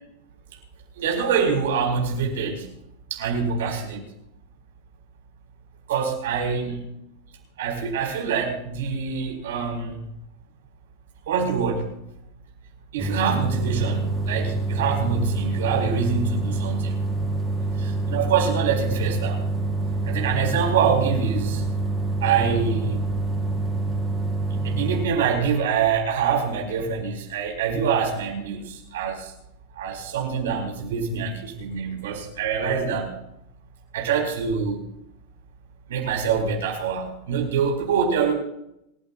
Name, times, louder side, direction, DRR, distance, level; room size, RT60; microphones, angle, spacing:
voice 1, 1.0-2.7 3.1-4.0 5.9-6.8 7.6-10.0 11.3-11.9 12.9-17.0 17.8-19.4 20.0-21.6 22.2-23.1 24.6-29.3 29.7-33.2 33.9-34.8 35.9-38.3, right 6 dB, 65° right, 1 dB, 4.8 m, -25 dB
sound 1, 13.0-25.1, right 2 dB, 20° right, 5.4 m, -26 dB
28.0 x 15.0 x 2.4 m, 0.81 s
figure-of-eight pair, 85°, 0 cm